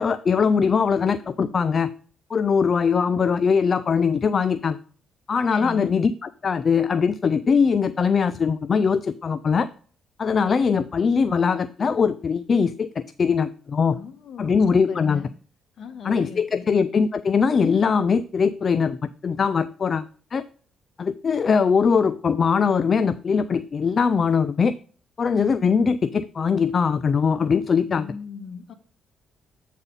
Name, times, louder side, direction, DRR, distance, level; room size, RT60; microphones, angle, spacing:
voice 1, 0.0-1.9 2.3-4.8 5.3-9.7 10.2-14.0 14.4-15.2 16.0-20.1 20.3-20.4 21.0-24.8 25.2-28.1, left 5 dB, 45° left, 0.4 m, -21 dB
voice 2, 5.5-6.0 13.9-15.3 15.8-16.7 27.9-28.7, left 5 dB, 60° left, 1.1 m, -38 dB
8.1 x 4.2 x 5.2 m
cardioid pair, 70°, 0 cm